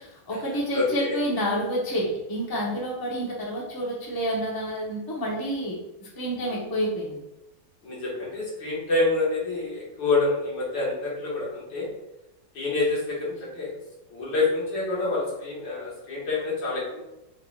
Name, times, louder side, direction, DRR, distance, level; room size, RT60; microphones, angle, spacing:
voice 1, 0.0-7.2, equal, 15° left, -4 dB, 0.8 m, -29 dB
voice 2, 0.7-1.2 6.4-6.6 7.8-11.9 12.5-13.7 14.1-17.0, left 3 dB, 70° left, -5 dB, 2.2 m, -27 dB
4.8 x 4.6 x 2.4 m, 0.90 s
omnidirectional pair, 2.1 m